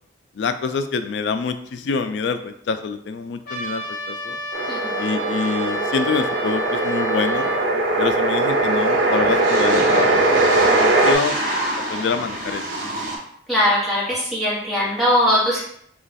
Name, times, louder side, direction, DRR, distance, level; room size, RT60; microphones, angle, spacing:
voice 1, 0.4-4.4 5.0-7.5 8.0-10.2 10.5-11.4 11.9-12.6, left 4 dB, 70° left, 9 dB, 0.3 m, -26 dB
Trumpet, 3.5-7.6, equal, 50° left, 1.1 m, -31 dB
sound 1, 4.5-11.1, right 2 dB, 85° right, 0.6 m, -20 dB
sound 2, 6.6-6.7 6.9-13.2, right 1 dB, 50° right, 0.7 m, -28 dB
voice 2, 13.5-15.6, equal, ahead, -9 dB, 1.3 m, -20 dB
3.1 x 2.3 x 4.0 m, 0.70 s
head